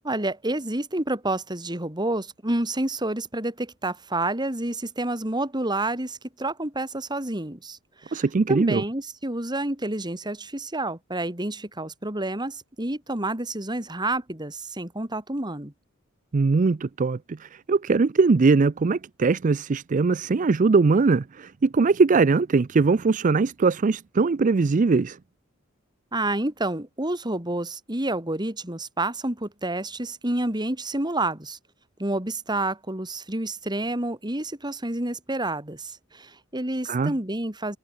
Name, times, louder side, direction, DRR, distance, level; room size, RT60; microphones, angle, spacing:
voice 1, 0.0-15.7 26.1-31.6 32.0-37.8, right 2 dB, 20° right, 3.3 m, -29 dB
voice 2, 8.1-8.8 16.3-25.2 36.9-37.1, right 4 dB, 40° right, 0.4 m, -21 dB
head